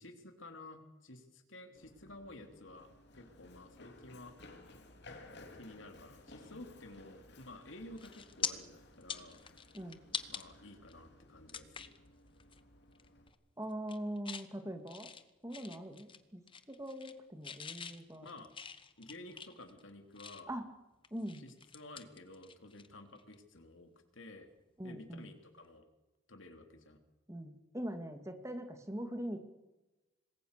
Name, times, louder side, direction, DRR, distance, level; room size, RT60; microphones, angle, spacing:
voice 1, 0.0-4.4 5.6-9.4 10.3-11.9 18.2-18.5 19.0-20.5 21.4-24.5 24.8-25.9 26.3-27.0, left 2 dB, 75° left, 6 dB, 3.2 m, -52 dB
Run, 1.7-13.3, left 2 dB, 55° left, 3.0 m, -57 dB
sound 1, 7.4-7.6 8.0-8.5 8.9-10.4 10.9-11.0 11.5-12.0 12.4-12.6 12.9-13.3 13.7-14.5 14.9-16.2 16.5-17.2 17.4-20.6 21.0-22.9 23.1-23.3 25.2-25.4, left 7 dB, 25° left, 1.2 m, -44 dB
voice 2, 13.6-15.1 15.4-16.4 16.7-18.3 20.5-20.7 21.1-21.4 24.8-25.3 27.3-29.4, right 1 dB, 15° right, 7 dB, 2.2 m, -42 dB
27.0 x 20.5 x 6.8 m, 1.0 s
head